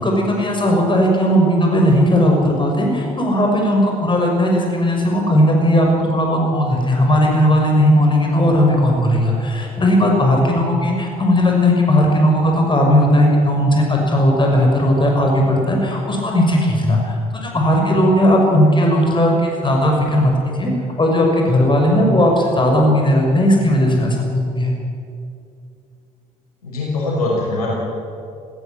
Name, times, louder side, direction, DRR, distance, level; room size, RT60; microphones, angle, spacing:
voice 1, 0.0-17.1 17.4-20.3 20.6-20.7 21.0-24.7, equal, 25° left, 1 dB, 6.1 m, -16 dB
voice 2, 26.6-27.7, left 2 dB, 80° left, -4 dB, 6.1 m, -22 dB
19.5 x 16.5 x 9.4 m, 2.5 s
figure-of-eight pair, 50°, 19 cm